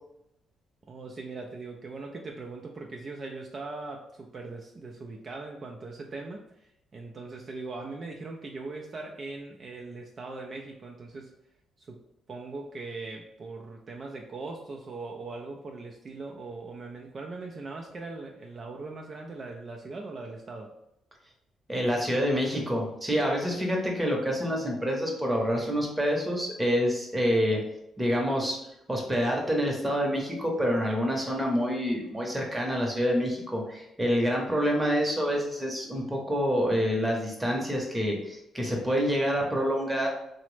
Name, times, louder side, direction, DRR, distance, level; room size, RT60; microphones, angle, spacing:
voice 1, 0.9-11.3 11.8-12.0 12.3-20.7, right 3 dB, 40° right, 1 dB, 0.3 m, -40 dB
voice 2, 21.7-27.6 28.0-28.6 28.9-40.1, equal, 10° right, 0 dB, 0.8 m, -27 dB
2.9 x 2.0 x 3.1 m, 0.82 s
cardioid pair, 90°, 0 cm